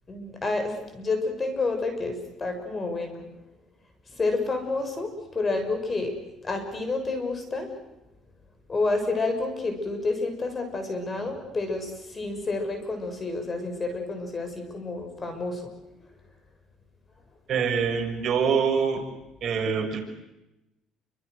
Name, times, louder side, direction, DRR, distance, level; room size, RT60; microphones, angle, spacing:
voice 1, 0.1-3.3 4.1-7.7 8.7-15.7, left 3 dB, 25° left, 6 dB, 6.5 m, -29 dB
voice 2, 17.5-19.0 19.4-20.0, right 6 dB, 50° right, 3 dB, 6.3 m, -25 dB
29.0 x 25.5 x 6.7 m, 0.95 s
cardioid pair, 100°, 0 cm